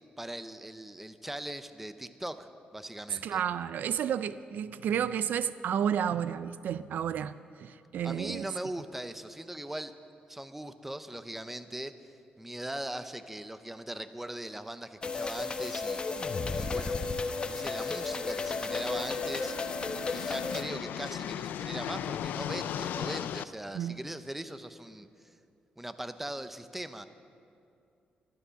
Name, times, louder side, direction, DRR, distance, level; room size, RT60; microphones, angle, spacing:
voice 1, 0.2-3.4 8.0-9.9 10.3-11.9 12.4-17.0 17.4-19.5 20.1-25.1 25.8-27.1, right 1 dB, 5° right, 11 dB, 0.6 m, -40 dB
voice 2, 3.1-7.3 7.6-8.5 23.7-24.0, right 9 dB, 75° right, 15 dB, 0.4 m, -31 dB
sound 1, 15.0-20.6, left 4 dB, 30° left, 1.0 m, -33 dB
sound 2, 16.2-23.4, left 10 dB, 90° left, 0.4 m, -39 dB
14.0 x 12.5 x 6.9 m, 2.5 s
cardioid pair, 115°, 3 cm